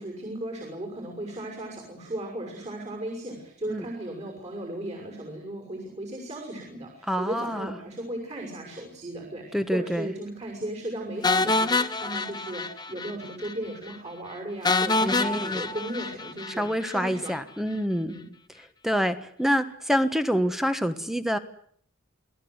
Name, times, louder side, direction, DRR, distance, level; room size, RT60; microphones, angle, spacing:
voice 1, 0.0-17.4 18.0-18.2, right 1 dB, 35° right, 1 dB, 6.2 m, -36 dB
voice 2, 7.1-7.7 9.5-10.1 15.0-15.6 16.6-18.1 18.8-21.4, equal, ahead, 9 dB, 1.4 m, -26 dB
sound 1, 11.2-13.1 13.4-13.5 13.9-14.0 14.6-16.9, left 3 dB, 20° left, 0.9 m, -26 dB
28.5 x 18.5 x 8.1 m, 0.62 s
head